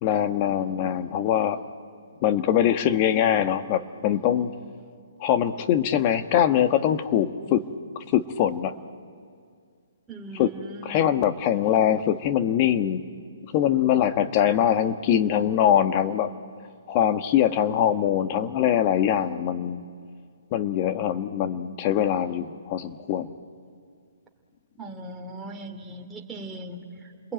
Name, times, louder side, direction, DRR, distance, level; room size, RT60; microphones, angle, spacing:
voice 1, 0.0-1.6 2.2-4.5 5.2-7.6 7.9-8.7 10.4-10.5 10.8-13.0 13.5-16.3 16.9-19.8 20.5-23.3, left 10 dB, 35° left, 9 dB, 1.3 m, -23 dB
voice 2, 10.1-11.0 24.8-27.3, right 2 dB, 10° right, 0 dB, 2.8 m, -39 dB
29.5 x 21.5 x 9.2 m, 2.2 s
hypercardioid pair, 140°, 0 cm